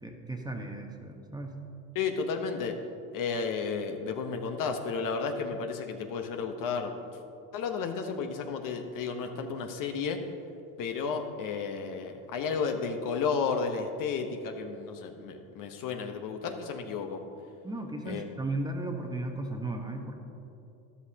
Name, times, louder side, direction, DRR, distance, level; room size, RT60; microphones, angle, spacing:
voice 1, 0.0-1.5 17.6-20.1, right 2 dB, 10° right, 2 dB, 1.1 m, -35 dB
voice 2, 1.9-2.8 3.1-7.1 7.5-10.3 10.8-17.2 18.0-18.2, left 5 dB, 50° left, 5 dB, 1.1 m, -32 dB
13.0 x 11.5 x 2.9 m, 2.8 s
supercardioid pair, 95°, 41 cm